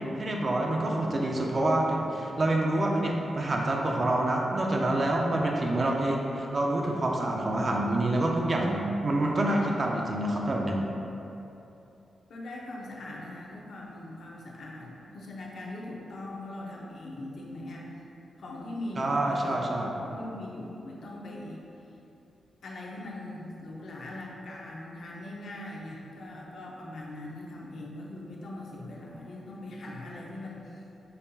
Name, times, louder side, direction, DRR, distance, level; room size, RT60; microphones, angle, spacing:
voice 1, 0.2-10.8 19.0-19.9, right 1 dB, 35° right, 0 dB, 0.4 m, -27 dB
voice 2, 12.3-17.9 18.4-21.6 22.6-30.8, left 1 dB, 65° left, -3 dB, 0.6 m, -41 dB
5.3 x 2.6 x 2.3 m, 2.9 s
wide cardioid pair, 130°, 0 cm